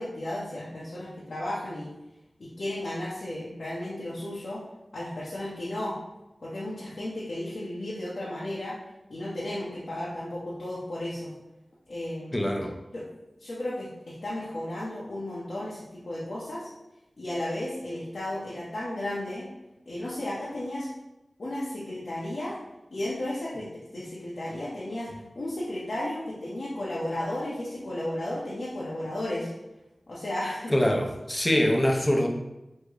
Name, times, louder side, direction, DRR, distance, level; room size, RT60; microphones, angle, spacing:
voice 1, 0.0-1.9 2.4-4.6 4.9-6.0 6.4-8.8 9.1-11.3 11.9-12.4 12.9-13.0 13.4-16.7 17.2-19.5 19.9-20.9 21.4-22.5 22.9-23.7 23.9-25.1 25.3-29.5 30.1-30.7, left 1 dB, 75° left, -8 dB, 0.7 m, -34 dB
voice 2, 12.3-12.7 30.7-32.3, equal, 20° left, 2 dB, 0.5 m, -24 dB
3.5 x 2.1 x 3.1 m, 0.98 s
wide cardioid pair, 50°, 0 cm